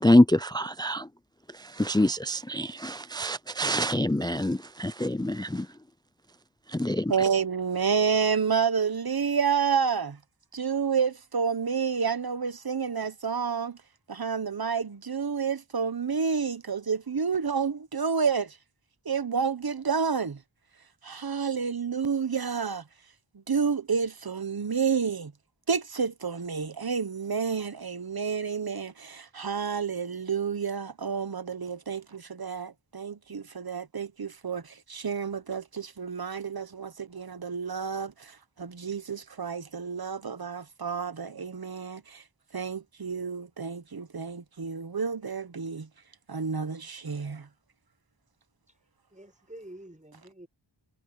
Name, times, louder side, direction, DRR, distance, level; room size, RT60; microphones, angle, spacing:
voice 1, 0.0-1.1 1.8-5.7 6.7-7.1, left 1 dB, 10° left, 0.4 m, -25 dB
voice 2, 7.1-10.2 10.5-13.8 14.1-18.6 19.0-20.4 21.0-22.8 23.5-25.3 25.7-42.2 42.5-45.9 46.3-47.5, right 6 dB, 50° right, 1.0 m, -29 dB
voice 3, 49.1-50.5, right 1 dB, 15° right, 7.0 m, -47 dB
wide cardioid pair, 50°, 46 cm